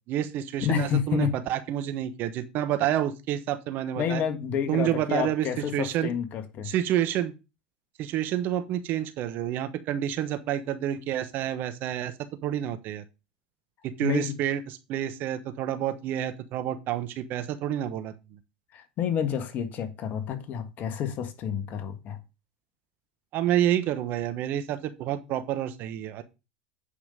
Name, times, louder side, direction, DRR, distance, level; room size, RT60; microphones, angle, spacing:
voice 1, 0.1-4.2 4.7-5.5 5.7-6.1 6.6-7.3 8.0-12.1 12.4-13.0 14.0-14.6 14.9-18.1 23.3-26.2, right 11 dB, 50° right, 1.1 m, -28 dB
voice 2, 0.6-1.4 4.0-6.7 14.0-14.4 18.7-22.2, left 9 dB, 45° left, 1.5 m, -29 dB
8.5 x 5.4 x 5.2 m
hypercardioid pair, 85°, 4 cm